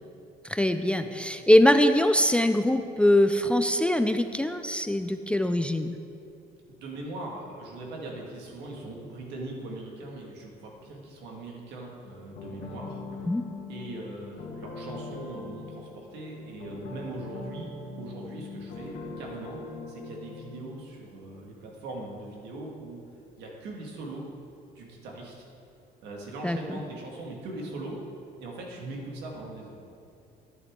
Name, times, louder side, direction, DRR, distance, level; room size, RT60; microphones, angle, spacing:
voice 1, 0.4-6.0 13.3-13.4 26.4-26.8, left 1 dB, 5° left, 8 dB, 0.3 m, -23 dB
voice 2, 6.7-13.3 13.7-17.7 18.0-23.0 23.4-24.2 24.8-25.5 26.0-28.0 28.4-29.8, right 2 dB, 85° right, -1 dB, 1.9 m, -40 dB
sound 1, 12.3-20.8, left 3 dB, 80° left, 1.5 m, -41 dB
10.5 x 9.2 x 3.7 m, 2.6 s
cardioid pair, 110°, 17 cm